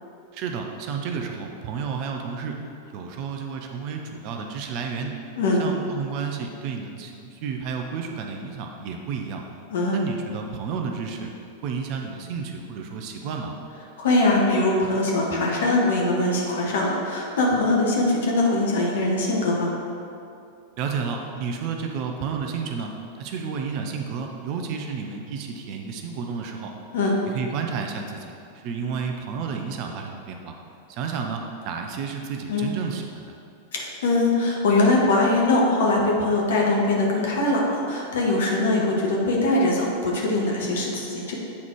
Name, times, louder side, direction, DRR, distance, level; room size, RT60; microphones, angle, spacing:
voice 1, 0.3-2.6 2.9-5.2 5.6-9.4 9.9-11.3 11.6-13.5 20.8-22.9 23.2-26.7 27.2-28.3 28.6-30.5 30.9-33.3, right 6 dB, 45° right, 3 dB, 0.7 m, -31 dB
voice 2, 14.0-19.7 26.9-27.2 32.5-32.7 33.7-41.3, left 2 dB, 60° left, -2 dB, 1.4 m, -22 dB
8.6 x 4.1 x 4.6 m, 2.6 s
figure-of-eight pair, 90°, 0 cm